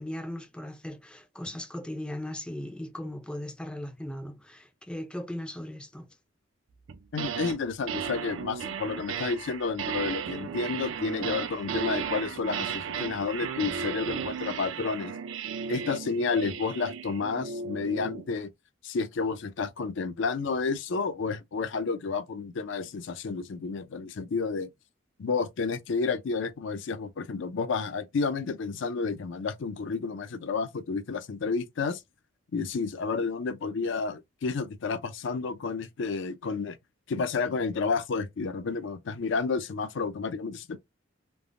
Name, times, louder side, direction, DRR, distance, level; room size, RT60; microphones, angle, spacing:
voice 1, 0.0-6.1, left 1 dB, 5° left, 0.4 m, -38 dB
sound 1, 6.9-7.6 7.9-18.3, right 6 dB, 75° right, 0.4 m, -35 dB
voice 2, 7.1-15.1 15.7-18.5 18.8-24.7 25.2-32.0 32.5-36.8 37.1-40.8, left 4 dB, 70° left, 0.5 m, -31 dB
3.3 x 2.0 x 2.4 m
head